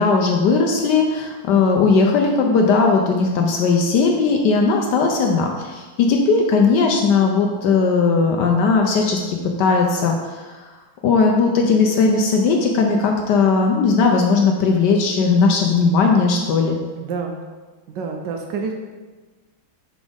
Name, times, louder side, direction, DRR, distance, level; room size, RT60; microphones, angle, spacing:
voice 1, 0.0-10.5 11.0-16.8, left 4 dB, 70° left, 2 dB, 1.1 m, -17 dB
voice 2, 17.0-17.4 17.9-18.7, right 5 dB, 75° right, 3 dB, 1.1 m, -28 dB
5.1 x 5.0 x 3.7 m, 1.3 s
omnidirectional pair, 2.2 m